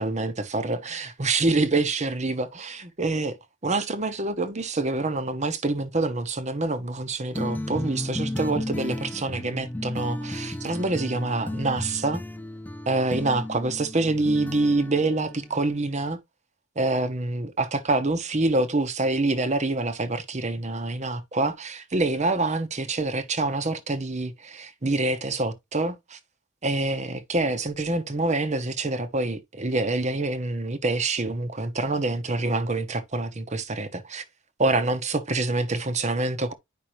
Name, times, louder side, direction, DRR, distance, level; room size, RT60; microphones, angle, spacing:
voice 1, 0.0-3.4 3.6-12.2 12.9-16.2 16.8-26.2 26.6-34.2 34.6-36.5, right 2 dB, 35° right, 1.0 m, -26 dB
sound 1, 7.3-15.8, left 1 dB, 10° left, 0.4 m, -34 dB
10.5 x 5.5 x 3.1 m
head